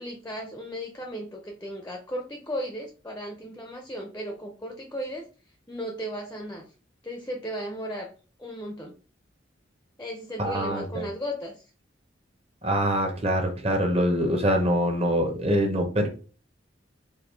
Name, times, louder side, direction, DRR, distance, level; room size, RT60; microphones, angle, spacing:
voice 1, 0.0-5.2 5.7-6.7 7.0-8.1 8.4-8.9 10.0-11.6, equal, 10° left, 3 dB, 0.5 m, -35 dB
voice 2, 10.4-11.0 12.6-16.1, equal, 30° right, 4 dB, 0.8 m, -24 dB
4.8 x 2.6 x 3.3 m, 0.37 s
head